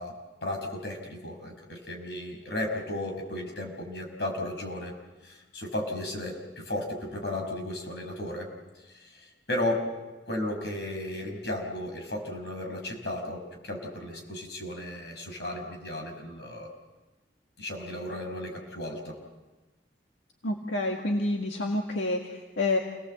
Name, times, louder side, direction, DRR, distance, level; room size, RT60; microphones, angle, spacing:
voice 1, 0.0-4.9 5.2-8.5 8.8-10.0 10.3-16.7 17.6-19.2, left 1 dB, 65° left, 2 dB, 5.6 m, -34 dB
voice 2, 20.4-22.8, left 2 dB, 90° left, 1 dB, 1.9 m, -28 dB
28.5 x 19.0 x 7.9 m, 1.2 s
head